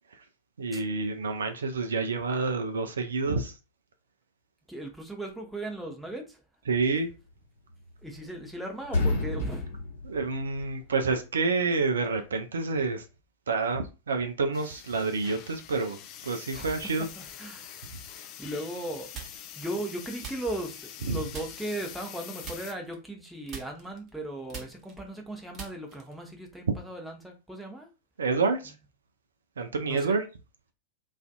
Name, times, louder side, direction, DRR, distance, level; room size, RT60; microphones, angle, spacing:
voice 1, 0.6-3.5 6.7-7.1 10.0-13.0 13.5-16.0 16.2-17.1 21.1-21.2 28.2-28.7 29.6-30.2, right 4 dB, 70° right, 0.4 m, -28 dB
voice 2, 4.7-6.4 8.0-9.7 16.5-17.8 18.4-27.9 29.8-30.2, right 1 dB, 5° right, 0.7 m, -37 dB
sound 1, 7.7-8.5 8.8-11.0, left 2 dB, 65° left, 1.0 m, -30 dB
sound 2, 14.5-22.7, left 10 dB, 40° left, 0.4 m, -45 dB
sound 3, 19.1-19.6 20.2-21.0 21.3-21.8 22.4-23.2 23.5-26.3, right 6 dB, 35° right, 0.8 m, -43 dB
2.4 x 2.4 x 2.3 m
figure-of-eight pair, 90°, 0 cm